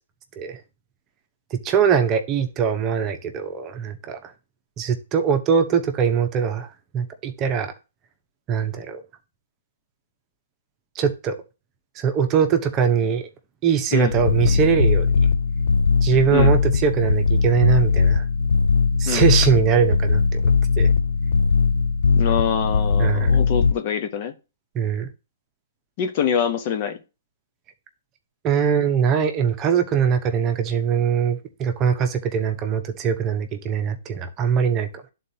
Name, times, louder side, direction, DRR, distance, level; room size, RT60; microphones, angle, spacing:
voice 1, 1.5-4.2 4.8-6.7 6.9-7.7 8.5-9.0 10.9-11.3 12.0-13.2 13.6-15.1 16.0-18.2 19.0-20.4 20.8-20.9 23.0-23.3 24.7-25.1 28.4-35.1, right 7 dB, 25° right, 1.0 m, -22 dB
voice 2, 13.9-14.6 16.3-16.5 19.0-19.3 22.2-24.3 26.0-27.0, left 8 dB, 45° left, 1.1 m, -25 dB
sound 1, 14.1-23.7, left 5 dB, 80° left, 0.4 m, -19 dB
11.0 x 4.0 x 2.8 m
hypercardioid pair, 135°, 0 cm